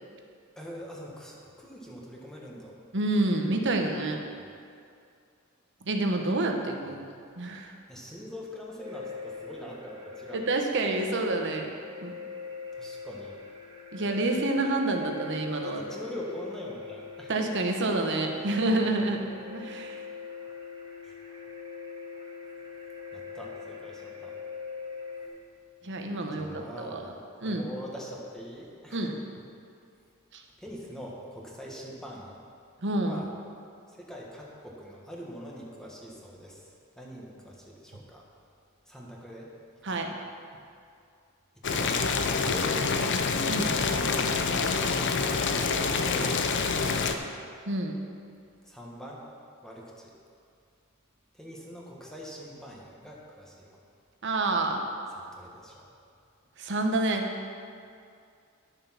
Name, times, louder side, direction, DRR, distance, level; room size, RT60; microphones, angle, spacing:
voice 1, 0.5-2.8 7.9-10.4 12.7-13.4 15.6-17.3 18.8-19.0 21.0-21.1 23.1-24.3 26.3-27.2 27.4-29.1 30.6-32.3 33.0-33.3 33.9-36.6 37.0-38.2 38.9-39.5 39.9-40.0 41.6-42.0 42.4-42.9 44.4-44.7 45.6-46.4 46.8-47.2 48.6-49.2 49.6-50.1 51.3-53.8 55.1-55.9, equal, 5° left, -3 dB, 1.6 m, -43 dB
voice 2, 2.9-4.2 5.8-7.0 7.4-7.7 10.3-11.7 12.0-12.1 13.9-15.8 17.3-20.0 25.8-27.0 27.4-27.6 28.9-29.1 30.3-30.4 32.8-33.2 39.8-40.1 43.5-43.7 47.7-48.0 54.2-54.8 56.6-57.3, right 2 dB, 60° right, 3 dB, 1.1 m, -28 dB
sound 1, 8.8-25.3, left 5 dB, 20° right, 1.5 m, -42 dB
Boiling, 41.6-47.1, left 4 dB, 60° left, 0.7 m, -27 dB
11.5 x 6.9 x 5.8 m, 2.4 s
head